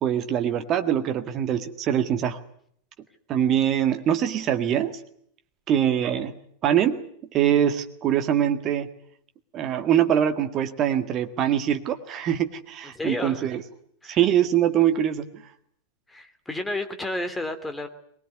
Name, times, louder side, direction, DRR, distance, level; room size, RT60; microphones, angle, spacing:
voice 1, 0.0-2.4 3.3-5.0 5.7-6.3 6.6-7.0 7.3-8.9 9.5-13.6 14.0-15.4, right 10 dB, 30° right, 8 dB, 1.8 m, -23 dB
voice 2, 12.9-13.5 14.0-14.2 16.1-17.9, left 2 dB, 10° left, 8 dB, 3.0 m, -31 dB
22.0 x 20.5 x 9.5 m, 0.66 s
figure-of-eight pair, 90°, 0 cm